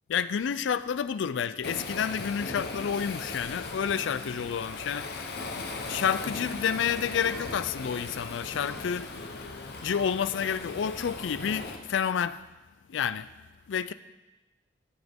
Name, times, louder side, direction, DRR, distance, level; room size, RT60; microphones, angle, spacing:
voice 1, 0.1-5.2 5.5-9.2 9.8-12.4 12.9-13.3 13.7-13.9, left 7 dB, 75° left, 0.4 m, -30 dB
Waves surf, 1.6-11.8, left 3 dB, 55° left, 0.9 m, -38 dB
sound 1, 5.9-6.0 7.2-7.3 8.5-8.6 9.8-9.9 11.1-11.2, right 1 dB, 40° right, 2.1 m, -52 dB
14.5 x 5.9 x 3.6 m
head